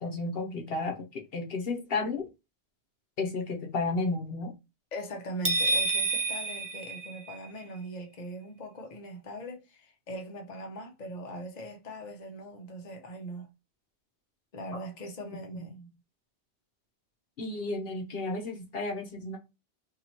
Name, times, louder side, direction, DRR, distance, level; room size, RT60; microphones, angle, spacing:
voice 1, 0.0-2.2 3.2-4.5 14.7-14.8 15.5-15.7 17.4-19.4, left 3 dB, 65° left, 1.1 m, -33 dB
voice 2, 4.9-13.5 14.5-15.9, right 1 dB, 45° left, 0.9 m, -41 dB
sound 1, 5.4-7.6, right 3 dB, 20° right, 0.6 m, -29 dB
3.0 x 2.8 x 4.1 m
omnidirectional pair, 1.1 m